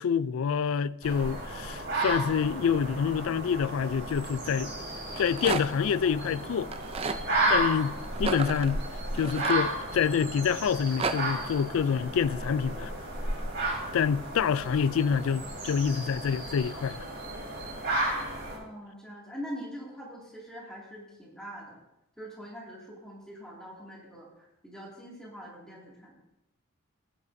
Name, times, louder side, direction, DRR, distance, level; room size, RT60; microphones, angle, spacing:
voice 1, 0.0-4.7 5.2-6.7 7.5-8.8 9.1-12.9 13.9-17.0, left 7 dB, 70° left, 0.3 m, -27 dB
sound 1, 1.0-18.6, right 2 dB, 50° right, 3.5 m, -33 dB
Rattle, 5.0-5.9 6.6-7.2 8.1-10.1 10.6-11.2, right 4 dB, 25° right, 0.5 m, -33 dB
voice 2, 18.5-21.8 22.2-26.1, equal, 5° left, 2.4 m, -43 dB
16.0 x 10.5 x 2.7 m
head